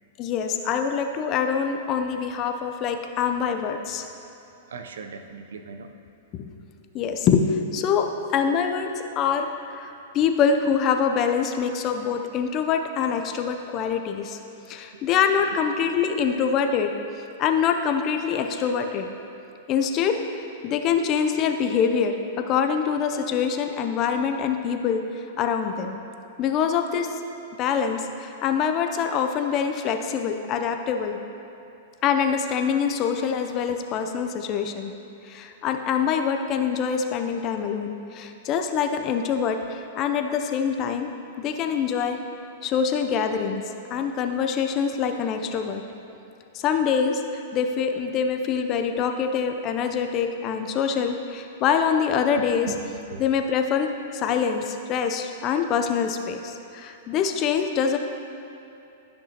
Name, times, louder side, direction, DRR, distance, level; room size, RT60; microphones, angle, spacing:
voice 1, 0.2-4.1 6.3-6.4 6.9-14.4 14.7-16.9 17.4-19.1 19.7-20.2 20.6-22.2 22.5-26.0 26.4-27.2 27.6-31.2 32.0-34.9 35.3-41.1 41.4-42.2 42.6-43.6 43.9-45.8 46.5-52.7 53.2-53.9 54.1-58.0, left 7 dB, 35° left, 6 dB, 0.6 m, -25 dB
voice 2, 4.7-5.9 14.9-15.0 18.6-18.7 52.4-53.2, right 4 dB, 85° right, 6 dB, 0.6 m, -38 dB
12.5 x 6.0 x 2.9 m, 2.8 s
hypercardioid pair, 135°, 0 cm